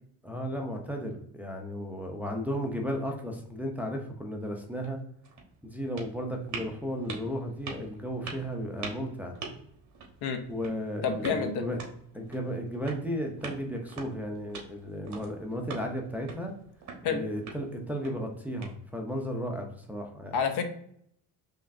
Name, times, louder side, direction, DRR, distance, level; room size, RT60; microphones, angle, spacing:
voice 1, 0.2-5.0 5.6-9.4 10.5-11.8 12.1-16.5 17.0-20.3, equal, 5° right, 1 dB, 0.6 m, -34 dB
sound 1, 4.8-19.2, right 4 dB, 45° right, 1.2 m, -45 dB
voice 2, 11.0-11.6 17.0-17.2 20.3-20.6, left 6 dB, 70° left, 7 dB, 0.8 m, -28 dB
4.9 x 3.1 x 2.6 m, 0.69 s
cardioid pair, 120°, 41 cm